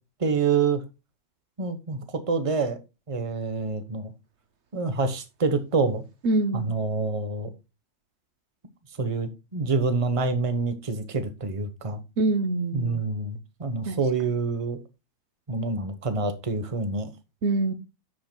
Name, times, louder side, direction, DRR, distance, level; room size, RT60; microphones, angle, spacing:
voice 1, 0.2-0.8 1.6-2.8 3.1-4.1 4.7-6.0 6.5-7.5 9.0-12.0 12.7-14.8 15.5-17.1, right 4 dB, 25° right, 1.0 m, -27 dB
voice 2, 6.2-6.7 12.2-13.0 13.9-14.0 17.4-17.7, right 2 dB, 60° right, 1.1 m, -25 dB
10.0 x 7.7 x 2.2 m
omnidirectional pair, 1.3 m